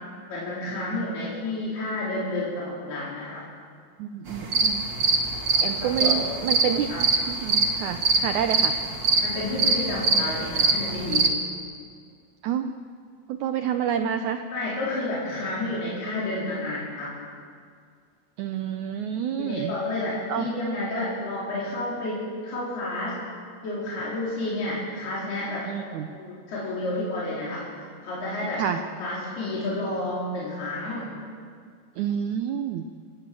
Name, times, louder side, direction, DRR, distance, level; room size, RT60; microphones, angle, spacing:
voice 1, 0.3-3.4 5.4-6.2 6.9-7.0 9.2-11.3 14.5-17.1 19.4-23.2 23.6-28.6 29.0-31.1, left 2 dB, 90° left, -7 dB, 6.3 m, -30 dB
voice 2, 4.0-4.8 5.6-8.7 12.4-12.7 13.3-14.4 18.4-19.7 20.3-20.5 25.7-26.1 28.6-28.8 32.0-32.9, right 9 dB, 80° right, 7 dB, 1.7 m, -28 dB
sound 1, 4.3-11.3, right 3 dB, 40° right, 2.0 m, -23 dB
30.0 x 15.5 x 7.7 m, 2.1 s
omnidirectional pair, 4.4 m